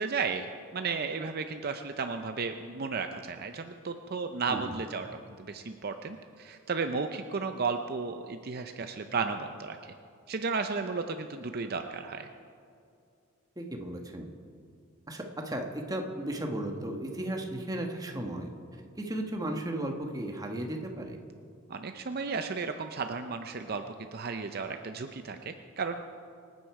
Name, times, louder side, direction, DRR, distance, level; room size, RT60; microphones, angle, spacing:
voice 1, 0.0-9.9 10.3-12.3 21.7-26.0, right 4 dB, 50° right, 7 dB, 0.6 m, -34 dB
voice 2, 4.5-4.8 13.6-14.3 15.1-18.5 19.0-21.2, right 1 dB, 20° right, 3 dB, 1.2 m, -35 dB
25.0 x 9.4 x 4.8 m, 2.5 s
head